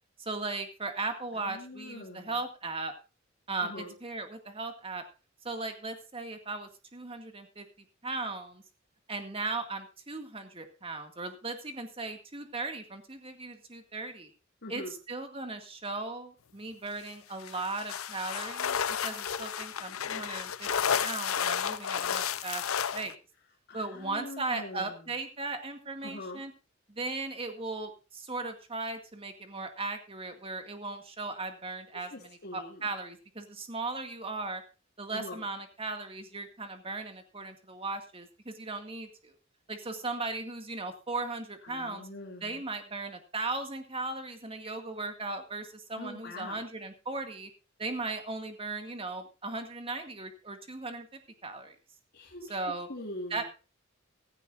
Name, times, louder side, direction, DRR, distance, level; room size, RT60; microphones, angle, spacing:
voice 1, 0.2-2.9 3.5-5.0 5.4-7.7 8.0-8.6 9.1-14.3 14.7-18.8 19.0-20.7 21.0-22.7 22.9-23.1 23.7-26.5 26.9-34.6 35.0-39.3 39.7-42.1 42.4-47.5 47.8-51.8 52.5-52.9 53.3-53.4, right 3 dB, 25° right, 6 dB, 2.1 m, -37 dB
voice 2, 1.1-2.3 3.6-3.9 14.6-14.9 23.7-25.1 26.0-26.4 31.9-32.9 35.1-35.4 41.6-42.6 46.0-46.7 52.1-52.6 52.9-53.4, left 1 dB, 55° left, -1 dB, 2.6 m, -43 dB
sound 1, 17.4-23.1, left 8 dB, 90° left, 0.7 m, -32 dB
16.0 x 14.5 x 2.6 m, 0.31 s
head